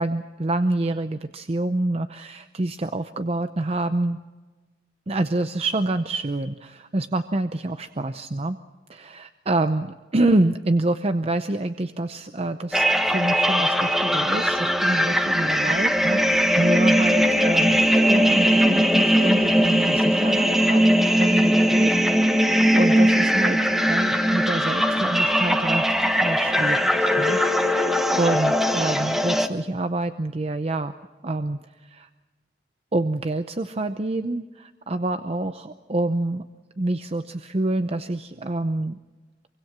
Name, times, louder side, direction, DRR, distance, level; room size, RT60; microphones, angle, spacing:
voice 1, 0.0-4.2 5.1-8.6 8.9-30.9 31.2-32.1 32.9-36.4 36.8-39.0, right 2 dB, 35° right, 10 dB, 0.7 m, -27 dB
sound 1, 12.7-29.5, equal, ahead, 1.2 m, -20 dB
24.5 x 24.0 x 6.0 m, 1.3 s
head